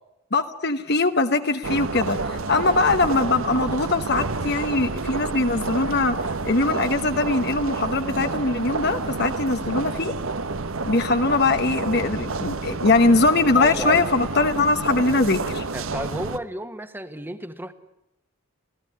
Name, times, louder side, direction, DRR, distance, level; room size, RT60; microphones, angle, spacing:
voice 1, 0.3-6.2 6.4-10.1 10.8-15.6, left 3 dB, 50° left, 7 dB, 1.1 m, -21 dB
sound 1, 1.6-16.4, right 3 dB, 65° right, 1.1 m, -29 dB
voice 2, 13.6-14.0 15.1-15.2 15.7-17.7, right 1 dB, 10° right, 10 dB, 1.5 m, -32 dB
28.0 x 17.0 x 9.9 m, 0.92 s
head